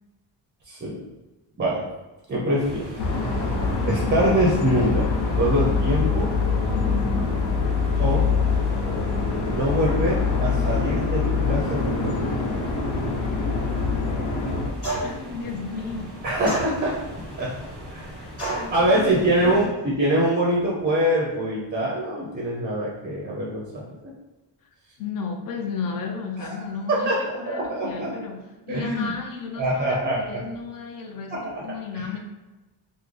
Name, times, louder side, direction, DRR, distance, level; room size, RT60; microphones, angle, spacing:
voice 1, 0.6-1.0 1.6-1.9 2.3-3.5 3.8-5.1 5.4-6.3 8.0-8.3 9.5-12.2 16.2-17.0 17.3-17.5 17.9-18.2 18.7-23.9 26.4-26.6 26.9-28.1 28.7-29.1 29.6-30.4 31.3-31.6 31.9-32.1, right 1 dB, 25° right, -4 dB, 0.5 m, -24 dB
sound 1, 2.6-19.7, equal, ahead, 0.7 m, -40 dB
sound 2, 3.0-14.7, left 4 dB, 75° left, 0.8 m, -24 dB
sound 3, 14.8-15.3 16.4-17.1 18.4-18.8, right 1 dB, 30° left, 1.4 m, -30 dB
voice 2, 15.0-16.2 18.2-19.8 25.0-32.2, left 5 dB, 50° left, 3 dB, 0.5 m, -34 dB
3.6 x 2.1 x 3.1 m, 1.1 s
wide cardioid pair, 180°, 45 cm